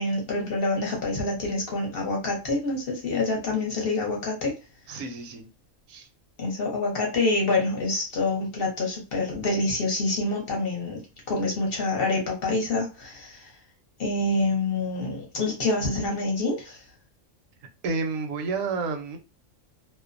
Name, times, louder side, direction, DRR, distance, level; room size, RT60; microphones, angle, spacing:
voice 1, 0.0-4.5 6.4-11.0 11.3-13.5 14.0-16.8, left 2 dB, 50° left, 0.8 m, -26 dB
voice 2, 4.9-5.5 5.9-6.1 17.8-19.2, right 4 dB, 75° right, 1.0 m, -30 dB
2.5 x 2.1 x 2.4 m
omnidirectional pair, 1.4 m